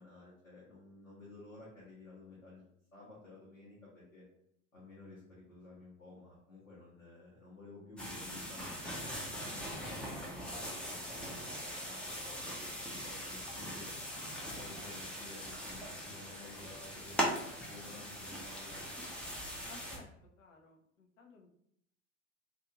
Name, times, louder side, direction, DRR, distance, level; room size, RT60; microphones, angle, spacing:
voice 1, 0.0-2.6 2.9-4.2 4.7-8.7 9.1-10.5 10.8-13.9 14.4-18.8, left 2 dB, 90° left, -9 dB, 1.0 m, -53 dB
sound 1, 8.0-20.0, equal, 5° left, 0.4 m, -41 dB
voice 2, 19.7-20.1 20.4-21.5, left 4 dB, 70° left, 2 dB, 0.7 m, -56 dB
2.5 x 2.4 x 2.9 m, 0.72 s
figure-of-eight pair, 80°, 40 cm